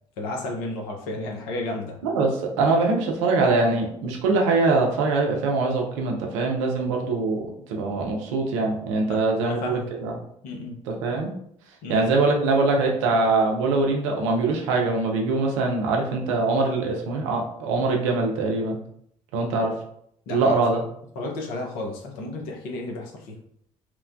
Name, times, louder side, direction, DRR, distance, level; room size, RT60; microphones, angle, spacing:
voice 1, 0.2-2.0 9.0-9.9 10.4-10.8 11.8-12.0 20.3-20.8 21.2-23.4, left 2 dB, 65° left, 0 dB, 0.7 m, -32 dB
voice 2, 2.0-10.1 10.9-11.3 11.9-18.8 19.3-19.7 20.3-20.8, right 3 dB, 75° right, 1 dB, 0.5 m, -23 dB
2.9 x 2.1 x 2.5 m, 0.70 s
figure-of-eight pair, 50°, 16 cm